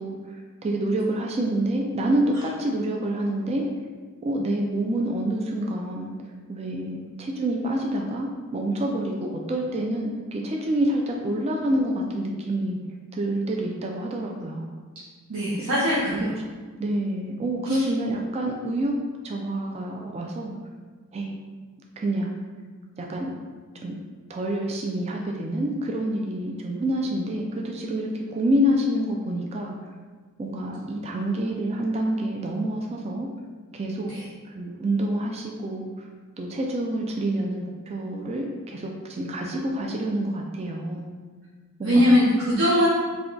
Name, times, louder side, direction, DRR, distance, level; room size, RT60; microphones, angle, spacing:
voice 1, 0.0-3.7 4.2-6.1 6.5-12.8 13.1-14.7 15.6-15.7 16.2-16.3 16.8-18.9 19.2-20.5 21.1-21.4 22.0-22.4 23.0-23.3 23.8-23.9 24.3-29.8 30.4-33.3 33.7-34.1 34.4-36.1 36.4-41.1 41.8-42.1 42.5-42.7, right 1 dB, 30° right, 0 dB, 0.3 m, -27 dB
voice 2, 15.3-16.3 34.1-34.2 41.8-42.9, equal, 70° right, -8 dB, 0.7 m, -20 dB
3.4 x 2.2 x 3.8 m, 1.4 s
head